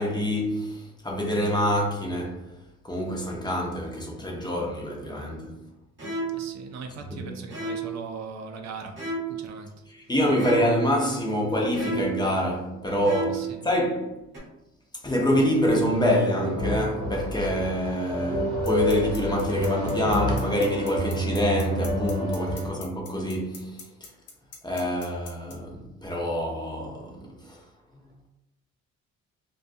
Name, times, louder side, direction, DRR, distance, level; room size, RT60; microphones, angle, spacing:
voice 1, 0.0-2.4 2.8-5.5 7.1-7.3 9.9-14.1 15.0-24.1 24.6-27.6, equal, 15° left, 0.6 m, -26 dB
sound 1, 6.0-6.6 7.5-8.0 9.0-9.5 10.4-10.9 11.7-12.3 13.0-13.6 14.3-14.4, right 3 dB, 40° right, 1.0 m, -31 dB
voice 2, 6.3-9.0 9.3-9.7 13.3-13.6 22.6-22.7, right 5 dB, 60° right, 0.4 m, -39 dB
sound 2, 15.7-22.7, equal, 90° right, 0.8 m, -29 dB
sound 3, 18.7-25.5, left 5 dB, 80° left, 0.7 m, -41 dB
2.3 x 2.2 x 2.6 m
cardioid pair, 90°, 30 cm